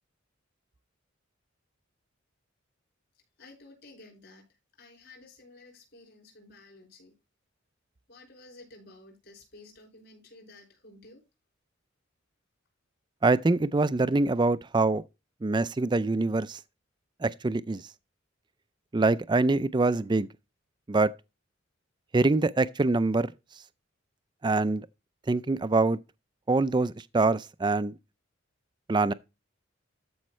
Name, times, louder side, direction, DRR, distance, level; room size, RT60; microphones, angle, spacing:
voice 1, 3.4-4.4 4.8-7.1 8.1-11.2, left 2 dB, 55° left, 5.6 m, -52 dB
voice 2, 13.2-15.0 15.4-16.6 17.2-17.8 18.9-20.3 20.9-21.1 22.1-23.3 24.4-24.9 25.3-26.0 26.5-27.9 28.9-29.1, right 3 dB, 20° right, 0.4 m, -24 dB
13.5 x 5.3 x 3.2 m
head